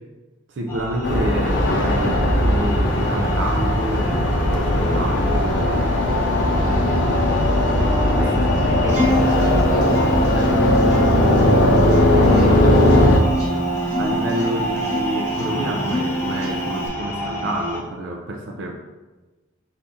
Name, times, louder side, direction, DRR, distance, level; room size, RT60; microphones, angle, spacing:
voice 1, 0.5-6.0 8.1-9.2 12.1-13.4 14.0-18.8, right 1 dB, 70° right, 2 dB, 0.4 m, -28 dB
sound 1, 0.7-17.8, equal, 10° left, 0.6 m, -29 dB
sound 2, 1.0-13.2, left 1 dB, 65° left, 0.6 m, -18 dB
voice 2, 8.2-11.4, equal, 5° right, -7 dB, 1.3 m, -32 dB
Acoustic guitar, 8.9-16.9, right 1 dB, 35° right, 1.1 m, -26 dB
4.2 x 2.7 x 3.6 m, 1.2 s
head